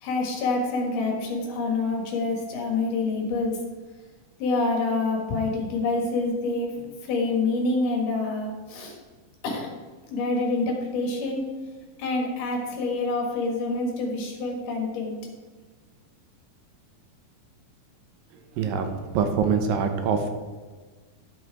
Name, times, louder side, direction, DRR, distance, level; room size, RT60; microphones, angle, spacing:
voice 1, 0.0-3.6 4.4-9.0 9.4-9.7 10.1-11.4 12.0-15.1, left 3 dB, 65° left, 1 dB, 3.0 m, -27 dB
voice 2, 18.6-20.3, right 6 dB, 75° right, 6 dB, 2.5 m, -24 dB
12.5 x 5.6 x 4.7 m, 1.4 s
omnidirectional pair, 4.2 m